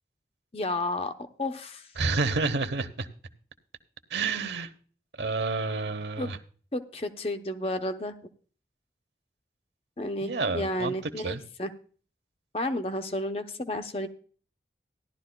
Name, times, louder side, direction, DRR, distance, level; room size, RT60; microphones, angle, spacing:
voice 1, 0.5-1.1 1.4-1.9 6.2-6.3 6.7-8.1 10.0-11.7 12.5-14.1, left 1 dB, 35° left, 8 dB, 0.8 m, -31 dB
voice 2, 2.0-3.1 4.1-4.7 5.1-6.4 10.2-10.9 11.2-11.4, right 3 dB, 80° right, 7 dB, 1.0 m, -29 dB
16.5 x 11.5 x 2.3 m, 0.43 s
head